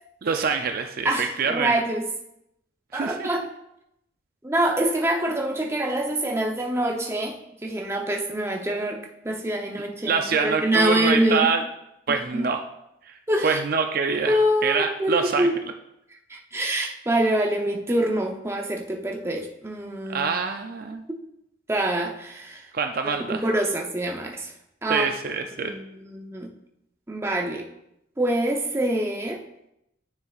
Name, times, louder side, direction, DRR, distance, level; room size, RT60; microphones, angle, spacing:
voice 1, 0.2-1.8 2.9-3.3 10.1-11.6 12.1-12.7 13.1-13.2 13.4-14.4 14.6-15.5 20.1-21.0 22.7-23.4 24.9-25.7, right 5 dB, 50° right, 5 dB, 0.4 m, -25 dB
voice 2, 1.0-2.1 2.9-3.4 4.4-11.5 12.1-12.4 13.3-13.6 14.3-15.5 16.3-20.3 21.1-21.2 21.7-22.7 23.3-24.5 24.8-25.1 25.5-26.5 27.1-27.6 28.2-29.4, right 1 dB, 15° right, 2 dB, 0.7 m, -25 dB
9.6 x 6.5 x 2.4 m, 0.82 s
head